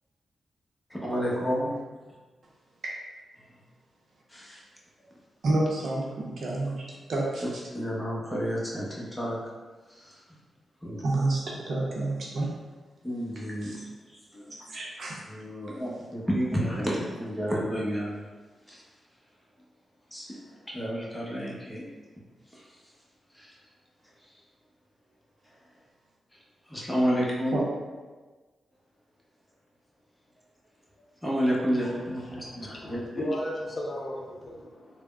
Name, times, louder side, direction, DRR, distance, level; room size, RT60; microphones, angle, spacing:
voice 1, 0.9-1.7 4.3-4.6 7.7-9.4 10.0-10.1 10.8-11.0 13.0-13.9 14.3-14.6 15.3-18.2 18.7-18.8 20.1-20.3 20.7-21.8 23.4-23.5 26.7-27.6 31.2-33.3, equal, 10° left, -4 dB, 0.8 m, -30 dB
voice 2, 5.4-7.4 11.0-12.5 13.6-13.8 14.5-15.2 27.5-27.6, right 2 dB, 65° right, -3 dB, 0.6 m, -29 dB
voice 3, 31.7-35.0, left 1 dB, 50° left, -2 dB, 0.5 m, -36 dB
3.3 x 2.0 x 2.2 m, 1.3 s
cardioid pair, 55°, 0 cm